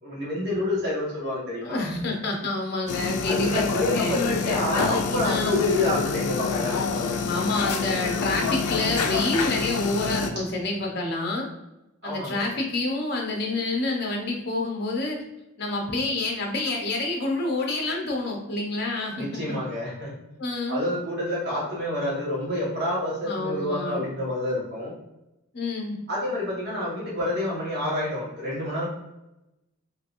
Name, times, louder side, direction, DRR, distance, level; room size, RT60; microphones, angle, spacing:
voice 1, 0.0-1.9 3.3-7.6 10.3-10.4 12.0-12.5 19.1-20.1 20.7-24.9 26.1-28.9, left 1 dB, 50° right, -6 dB, 1.4 m, -28 dB
voice 2, 1.6-4.2 5.2-5.6 7.2-11.5 12.0-15.2 15.6-19.6 20.4-20.8 23.2-24.0 25.5-26.0, left 2 dB, 50° left, 0 dB, 0.8 m, -28 dB
sound 1, 2.9-10.3, left 5 dB, 90° left, 0.4 m, -27 dB
3.3 x 3.2 x 2.5 m, 0.92 s
head